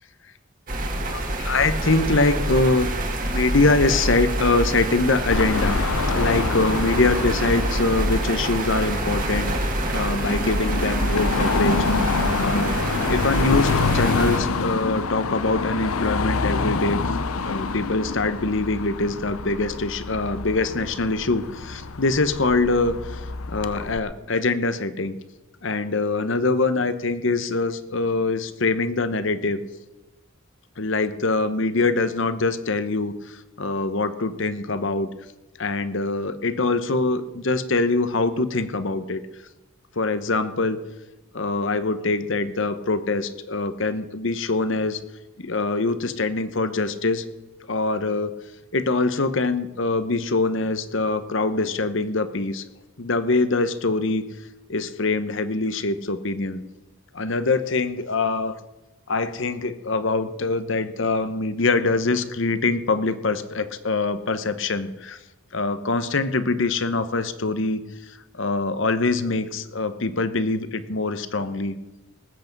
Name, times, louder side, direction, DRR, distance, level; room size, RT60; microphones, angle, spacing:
sound 1, 0.7-14.4, right 1 dB, 40° right, 1.8 m, -26 dB
voice 1, 1.1-2.9 3.2-5.8 6.1-9.5 9.9-12.8 13.1-17.0 17.4-23.2 23.5-25.2 25.6-29.6 30.8-35.1 35.6-39.2 40.0-40.8 41.3-45.0 45.4-47.2 47.7-48.3 48.7-52.6 53.0-54.3 54.7-56.6 57.1-58.6 59.1-65.2 65.5-67.8 68.1-71.8, left 3 dB, 65° left, 12 dB, 0.9 m, -24 dB
Car passing by / Traffic noise roadway noise / Engine, 5.3-24.0, left 4 dB, 90° left, 0.7 m, -27 dB
19.5 x 8.3 x 5.3 m, 1.1 s
head